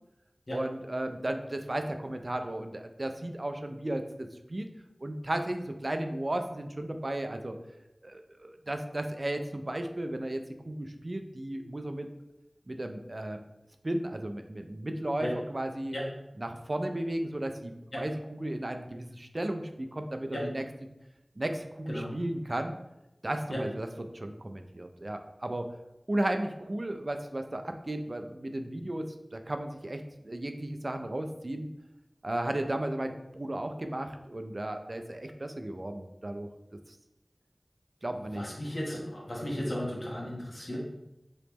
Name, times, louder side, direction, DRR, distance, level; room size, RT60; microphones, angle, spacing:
voice 1, 0.5-4.7 5.0-7.6 8.0-12.1 12.7-13.4 13.8-15.9 16.4-18.1 18.4-20.6 21.4-22.8 23.2-23.9 24.1-25.7 26.1-31.7 32.2-36.5 38.0-38.4 39.6-39.7, right 1 dB, 50° right, 6 dB, 0.3 m, -34 dB
voice 2, 38.3-40.8, equal, 65° left, -3 dB, 1.0 m, -35 dB
3.0 x 2.9 x 3.4 m, 0.92 s
wide cardioid pair, 50°, 0 cm